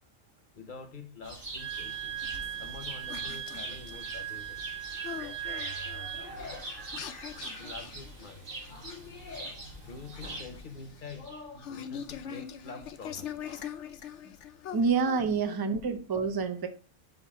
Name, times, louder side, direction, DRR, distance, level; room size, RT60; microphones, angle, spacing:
voice 1, 0.5-4.6 5.1-6.8 7.6-13.7 15.4-16.0, left 4 dB, 45° left, 1.0 m, -46 dB
sound 1, 1.2-11.6, right 2 dB, 85° right, 2.8 m, -44 dB
Wind instrument woodwind instrument, 1.6-6.3, right 11 dB, 70° right, 0.8 m, -38 dB
sound 2, 2.2-15.6, left 8 dB, 70° left, 1.0 m, -44 dB
voice 2, 14.7-16.7, right 5 dB, 30° right, 0.4 m, -28 dB
6.7 x 2.8 x 5.3 m
omnidirectional pair, 1.3 m